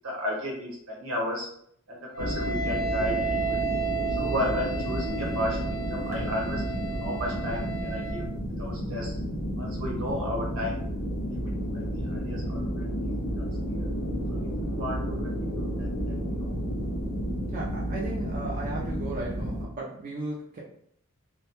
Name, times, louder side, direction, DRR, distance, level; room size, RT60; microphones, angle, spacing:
voice 1, 0.0-1.5 1.9-3.6 4.2-6.6 7.0-8.3 8.6-9.2 9.6-10.8 11.3-13.9 14.3-16.5, left 1 dB, 80° right, -3 dB, 0.9 m, -34 dB
Wind instrument woodwind instrument, 2.1-8.3, right 5 dB, 20° left, 0.6 m, -33 dB
sound 1, 2.2-19.7, equal, 90° left, 0.6 m, -31 dB
voice 2, 17.5-20.6, right 2 dB, 40° right, -3 dB, 0.4 m, -36 dB
2.2 x 2.1 x 2.9 m, 0.67 s
head